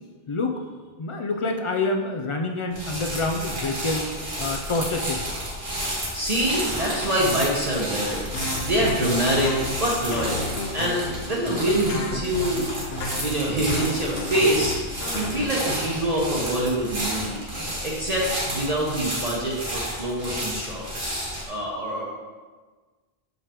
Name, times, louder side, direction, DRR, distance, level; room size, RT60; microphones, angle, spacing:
voice 1, 0.3-0.6 1.0-4.1 4.4-5.4, left 3 dB, 50° left, 3 dB, 0.3 m, -27 dB
sound 1, 2.7-21.5, equal, 75° right, 1.9 m, -31 dB
voice 2, 6.1-8.3 8.6-9.5 9.8-12.7 13.1-17.4 17.8-22.0, right 1 dB, 40° right, -4 dB, 0.9 m, -25 dB
sound 2, 8.3-15.4, left 3 dB, 85° left, 0.9 m, -33 dB
6.4 x 5.2 x 2.9 m, 1.4 s
omnidirectional pair, 1.0 m